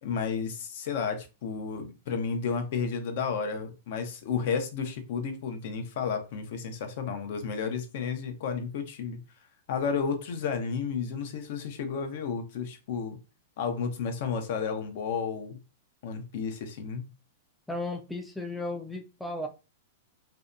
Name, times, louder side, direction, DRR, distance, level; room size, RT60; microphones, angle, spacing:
voice 1, 0.0-9.2 9.7-13.2 13.6-15.6 16.0-17.1, left 6 dB, 60° left, 0.6 m, -32 dB
voice 2, 17.7-19.5, left 2 dB, 5° left, 0.3 m, -35 dB
2.6 x 2.2 x 2.4 m
supercardioid pair, 150°, 0 cm